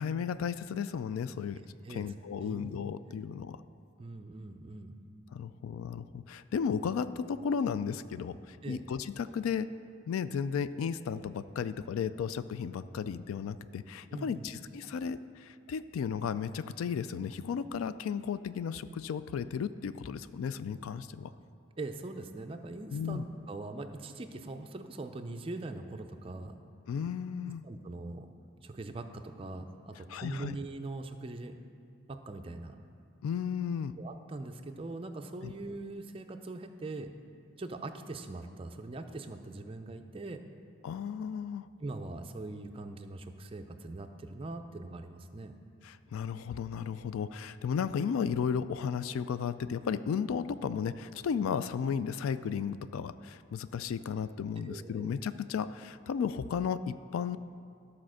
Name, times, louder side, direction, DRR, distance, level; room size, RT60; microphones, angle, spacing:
voice 1, 0.0-1.6 1.9-3.6 5.3-9.7 10.1-21.3 22.9-23.2 26.9-27.6 30.1-30.6 33.2-34.0 35.4-35.5 40.8-41.7 45.8-57.4, left 7 dB, 90° left, 14 dB, 0.3 m, -34 dB
voice 2, 4.0-5.0 8.6-8.8 14.1-14.5 21.8-26.6 27.4-28.3 28.6-31.6 32.1-32.8 34.0-37.1 37.6-40.4 41.8-45.5 54.6-55.1, right 2 dB, 25° right, 6 dB, 0.4 m, -42 dB
13.0 x 4.3 x 6.3 m, 2.4 s
head